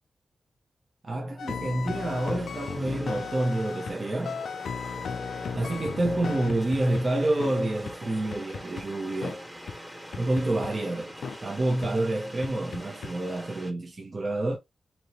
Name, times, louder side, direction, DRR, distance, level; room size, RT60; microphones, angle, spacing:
voice 1, 1.0-4.4 5.5-9.4 10.2-11.1 11.4-14.6, right 2 dB, 50° right, 0.8 m, -28 dB
sound 1, 1.4-4.0 4.2-7.0 7.4-7.5 7.8-7.9 8.3-8.8 9.2-9.4 9.7-9.8 10.1-10.7 11.2-11.4 11.8-11.9 12.4-13.1, left 6 dB, 80° left, 0.3 m, -35 dB
sound 2, 1.9-13.7, equal, 10° right, 1.4 m, -43 dB
2.9 x 2.7 x 3.0 m
cardioid pair, 50°, 0 cm